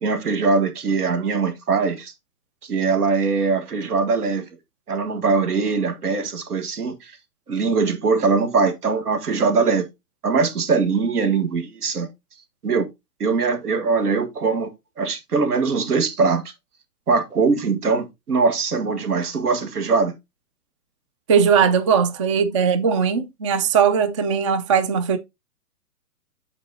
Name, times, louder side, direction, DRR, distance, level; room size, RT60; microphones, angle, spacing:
voice 1, 0.0-2.1 2.6-4.5 4.9-7.1 7.5-9.9 10.2-12.1 12.6-12.9 13.2-16.4 17.1-20.1, right 4 dB, 70° right, 1.7 m, -21 dB
voice 2, 21.3-25.2, right 6 dB, 20° right, 0.4 m, -19 dB
8.4 x 4.1 x 3.8 m
figure-of-eight pair, 125°, 47 cm